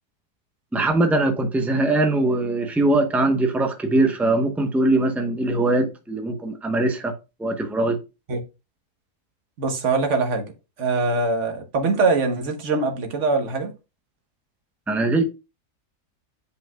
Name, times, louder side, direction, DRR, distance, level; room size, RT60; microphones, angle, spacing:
voice 1, 0.7-7.1 7.4-8.0 14.9-15.2, right 2 dB, ahead, 0.5 m, -21 dB
voice 2, 9.6-10.5 10.8-13.7, right 3 dB, 55° right, 1.3 m, -23 dB
8.4 x 5.2 x 2.2 m
omnidirectional pair, 1.6 m